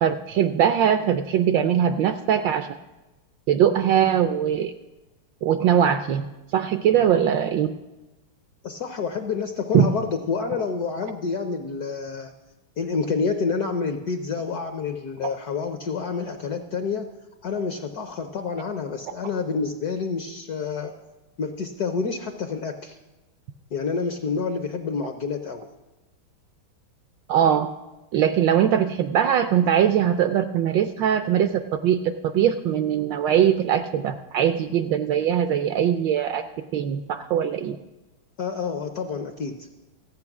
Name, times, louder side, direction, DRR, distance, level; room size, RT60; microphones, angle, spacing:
voice 1, 0.0-2.7 3.5-4.7 5.4-6.2 6.5-7.7 9.7-9.9 27.3-27.7 28.1-36.4 36.7-37.8, right 9 dB, 75° right, 9 dB, 1.1 m, -21 dB
voice 2, 8.6-12.3 12.8-17.1 17.4-20.9 21.4-23.0 23.7-25.7 38.4-39.6, left 5 dB, 65° left, 5 dB, 1.0 m, -28 dB
14.5 x 8.3 x 5.9 m, 1.1 s
omnidirectional pair, 2.4 m